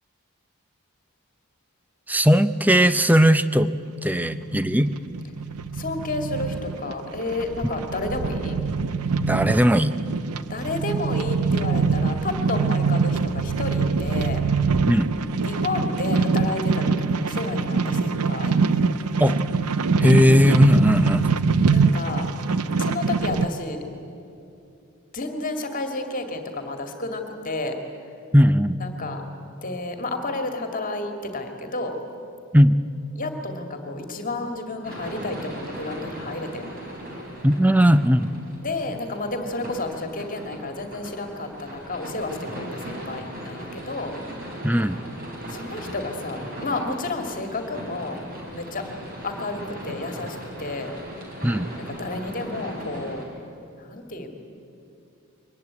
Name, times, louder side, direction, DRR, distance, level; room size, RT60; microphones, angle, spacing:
voice 1, 2.1-3.7 4.0-4.9 9.2-9.9 14.9-15.1 19.2-19.4 20.0-21.4 28.3-28.8 32.5-32.7 37.4-38.3 44.6-45.0 51.4-51.7, equal, 5° right, 12 dB, 0.5 m, -18 dB
voice 2, 4.1-4.5 5.7-8.6 10.5-14.4 15.4-18.6 21.7-22.3 22.8-23.8 25.1-27.8 28.8-29.2 29.6-32.0 33.2-36.7 38.6-44.2 45.5-48.2 48.5-48.9 49.2-50.9 51.8-53.2 53.7-54.3, left 2 dB, 40° left, 5 dB, 2.1 m, -31 dB
sound 1, 4.1-23.5, right 4 dB, 90° right, 0.8 m, -24 dB
sound 2, 34.8-53.2, equal, 40° right, 5.3 m, -38 dB
23.0 x 19.5 x 9.6 m, 2.6 s
head